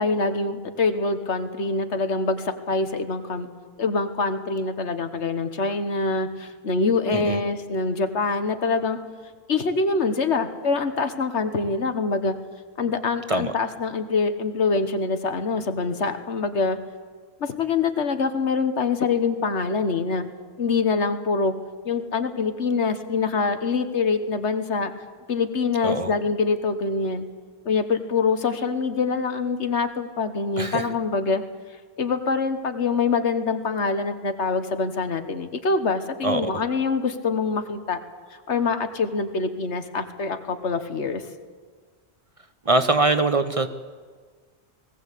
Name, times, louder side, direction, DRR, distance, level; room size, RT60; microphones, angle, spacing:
voice 1, 0.0-3.5 3.8-9.0 9.5-12.4 12.8-16.8 17.4-20.2 20.6-21.5 21.8-24.9 25.3-27.3 27.6-31.4 32.0-38.0 38.5-41.2, left 4 dB, 90° left, 9 dB, 1.6 m, -25 dB
voice 2, 42.7-43.7, right 2 dB, 35° right, 10 dB, 0.9 m, -22 dB
19.5 x 17.0 x 8.4 m, 1.5 s
omnidirectional pair, 1.1 m